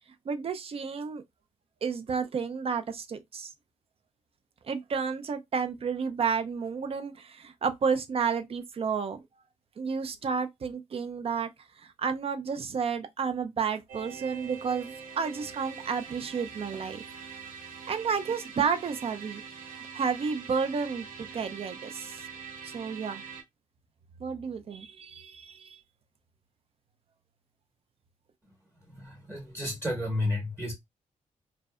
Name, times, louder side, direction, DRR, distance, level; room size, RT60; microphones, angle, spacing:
voice 1, 0.3-1.2 1.8-3.5 4.7-9.2 9.8-11.5 11.8-17.0 17.9-22.2 22.6-23.2 24.2-25.8, right 6 dB, 45° right, 0.4 m, -31 dB
sound 1, 13.9-23.4, right 6 dB, 90° right, 0.6 m, -44 dB
voice 2, 28.9-30.7, left 1 dB, 15° right, 0.9 m, -32 dB
2.6 x 2.1 x 2.3 m
cardioid pair, 85°, 14 cm